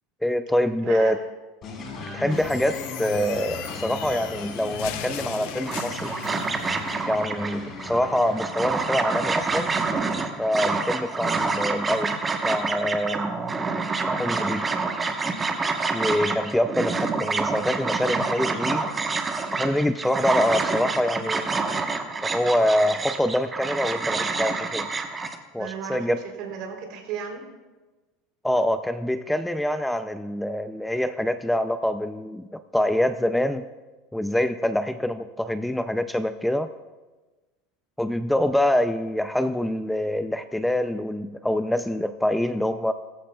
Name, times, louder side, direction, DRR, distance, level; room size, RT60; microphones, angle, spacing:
voice 1, 0.2-1.2 2.1-6.1 7.1-9.7 10.4-12.1 12.4-13.3 14.1-14.7 15.9-18.8 19.5-21.5 22.2-24.9 25.5-26.2 28.4-33.7 34.1-36.7 38.0-42.9, left 1 dB, 5° left, 10 dB, 0.4 m, -25 dB
voice 2, 0.8-1.2 2.2-2.5 25.5-27.4, right 7 dB, 55° right, 2 dB, 3.3 m, -35 dB
sound 1, 1.6-10.2, left 4 dB, 35° left, 3.3 m, -38 dB
sound 2, 2.3-6.7, left 11 dB, 70° left, 1.0 m, -38 dB
sound 3, 5.7-25.4, right 4 dB, 20° right, 1.0 m, -27 dB
20.0 x 14.0 x 2.3 m, 1.2 s
supercardioid pair, 135°, 0 cm